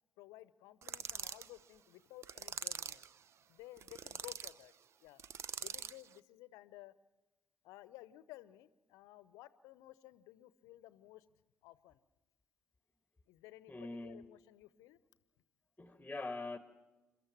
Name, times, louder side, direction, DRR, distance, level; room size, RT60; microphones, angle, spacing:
voice 1, 0.2-3.0 3.5-4.7 5.0-5.2 5.6-6.9 7.6-11.2 11.6-12.0 13.3-15.0, left 16 dB, 70° left, 16 dB, 0.8 m, -55 dB
sound 1, 0.8-1.5 2.2-3.1 3.8-4.5 5.2-6.0, right 8 dB, 50° right, 0.6 m, -43 dB
voice 2, 13.7-14.2 15.8-16.6, left 3 dB, 15° left, 8 dB, 1.4 m, -43 dB
29.0 x 13.5 x 7.4 m, 1.1 s
figure-of-eight pair, 45°, 6 cm